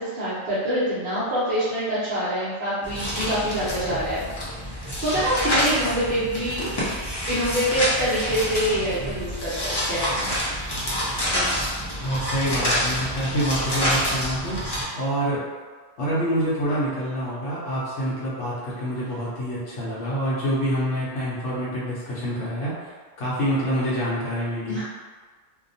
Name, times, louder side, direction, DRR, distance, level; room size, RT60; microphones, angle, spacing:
voice 1, 0.0-4.3 4.6-9.6 9.9-10.3 24.7-24.8, equal, 50° right, -13 dB, 0.8 m, -26 dB
sound 1, 2.8-14.8, equal, 35° left, 0.4 m, -27 dB
voice 2, 12.0-15.4 16.0-22.9 23.2-24.8, equal, 75° left, -8 dB, 1.0 m, -26 dB
2.7 x 2.1 x 2.6 m, 1.4 s
omnidirectional pair, 1.3 m